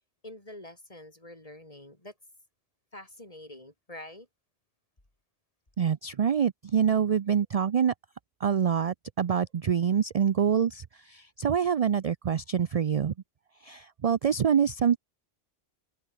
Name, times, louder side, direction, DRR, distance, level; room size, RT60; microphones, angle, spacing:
voice 1, 0.2-2.1 2.9-4.3, left 1 dB, 30° left, 4.3 m, -46 dB
voice 2, 5.8-7.9 8.4-13.1 13.6-15.0, right 8 dB, 45° right, 0.5 m, -26 dB
omnidirectional pair, 1.1 m